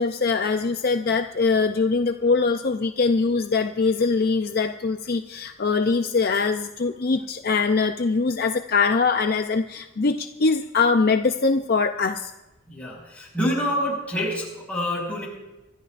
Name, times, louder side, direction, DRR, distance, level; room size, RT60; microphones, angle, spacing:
voice 1, 0.0-12.3, left 4 dB, 45° left, 6 dB, 0.5 m, -22 dB
voice 2, 12.7-15.3, equal, 5° left, -4 dB, 5.6 m, -27 dB
26.5 x 13.0 x 2.5 m, 1.0 s
head